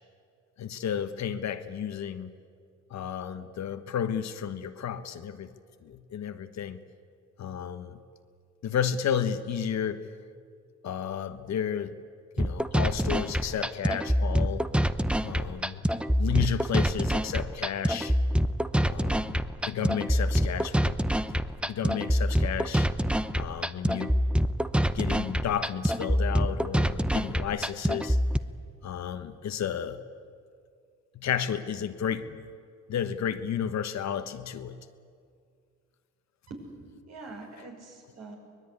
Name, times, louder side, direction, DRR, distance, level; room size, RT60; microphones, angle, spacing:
voice 1, 0.6-2.3 2.9-5.5 5.8-6.8 7.4-8.0 8.6-10.1 10.8-12.0 12.4-14.7 15.2-18.2 18.9-19.4 19.6-21.0 21.3-21.4 21.6-22.9 23.3-24.2 24.9-28.2 28.8-30.0 31.1-32.4 32.9-34.8, left 8 dB, 60° left, 10 dB, 1.3 m, -32 dB
sound 1, 12.4-28.4, equal, 5° right, 0.8 m, -26 dB
voice 2, 36.5-38.4, right 3 dB, 60° right, 1 dB, 6.4 m, -44 dB
23.5 x 20.0 x 9.7 m, 2.2 s
cardioid pair, 90°, 30 cm